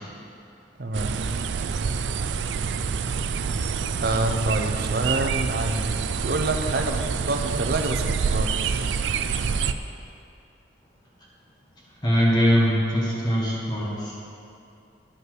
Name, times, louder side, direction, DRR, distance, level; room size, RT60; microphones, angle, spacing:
voice 1, 0.8-1.2 4.0-8.9, right 2 dB, 60° right, 5 dB, 0.7 m, -27 dB
sound 1, 0.9-9.7, right 5 dB, 85° right, 0.4 m, -27 dB
voice 2, 12.0-14.1, equal, 25° left, -5 dB, 1.4 m, -22 dB
9.9 x 5.5 x 6.2 m, 2.6 s
head